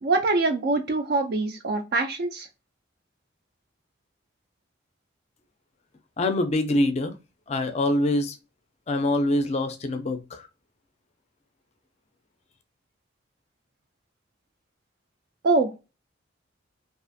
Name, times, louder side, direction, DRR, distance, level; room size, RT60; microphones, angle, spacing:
voice 1, 0.0-2.5 15.4-15.7, right 3 dB, 50° right, 0.3 m, -24 dB
voice 2, 6.2-7.1 7.5-8.4 8.9-10.5, left 1 dB, 35° left, 0.4 m, -24 dB
2.4 x 2.4 x 2.5 m
head